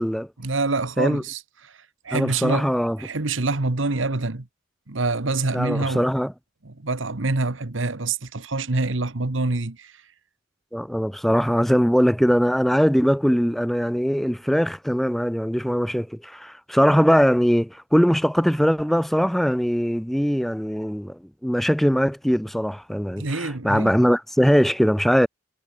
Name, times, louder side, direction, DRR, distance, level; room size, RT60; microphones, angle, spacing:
voice 1, 0.4-1.7 2.0-2.7 3.0-4.5 4.9-6.1 6.6-9.9 23.2-23.9, right 3 dB, 75° right, 1.4 m, -26 dB
voice 2, 2.1-3.0 5.5-6.3 10.7-25.3, equal, ahead, 0.8 m, -21 dB
head